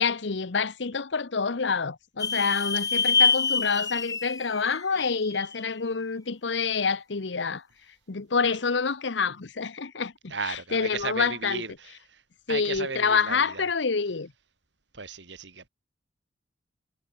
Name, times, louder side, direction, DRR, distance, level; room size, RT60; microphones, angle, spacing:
voice 1, 0.0-7.6 8.1-11.6 12.5-14.3, left 5 dB, 75° left, 0.9 m, -27 dB
sound 1, 2.2-5.7, left 5 dB, 20° left, 1.3 m, -26 dB
voice 2, 10.3-12.2 12.5-13.7 14.9-15.7, right 5 dB, 75° right, 2.4 m, -35 dB
head